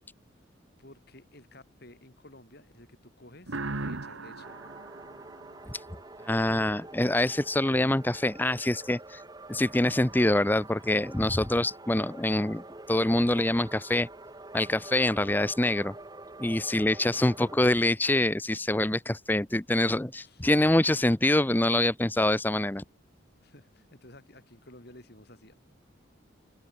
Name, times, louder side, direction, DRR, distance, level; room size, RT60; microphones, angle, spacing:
voice 1, 0.8-4.6 17.1-17.5 19.9-20.4 23.4-25.5, left 1 dB, 50° left, 4.6 m, -53 dB
sound 1, 3.5-6.1, right 3 dB, 80° right, 1.6 m, -38 dB
sound 2, 4.4-17.6, right 2 dB, 20° right, 1.5 m, -47 dB
voice 2, 6.3-9.2 9.5-12.6 12.9-14.1 14.5-15.9 16.4-22.8, left 1 dB, 10° left, 0.5 m, -25 dB
head